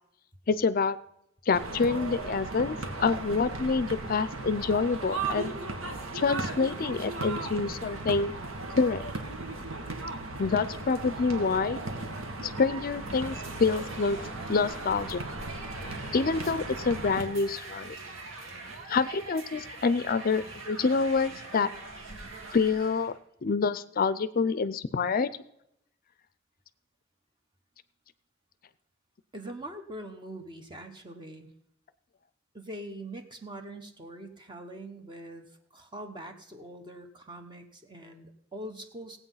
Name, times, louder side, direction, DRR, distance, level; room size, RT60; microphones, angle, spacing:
voice 1, 0.5-1.0 1.5-5.5 6.1-8.3 8.8-9.0 10.4-11.8 12.4-14.2 14.5-15.2 16.1-18.0 18.9-21.7 22.5-23.1 23.4-25.3, left 4 dB, 45° left, 15 dB, 0.5 m, -27 dB
sound 1, 1.5-17.2, right 2 dB, 90° right, 1.9 m, -36 dB
sound 2, 12.8-23.2, right 3 dB, 70° right, 2.4 m, -44 dB
voice 2, 29.3-31.5 32.5-39.2, right 1 dB, 25° right, 5 dB, 1.0 m, -43 dB
17.0 x 8.2 x 5.6 m, 0.80 s
head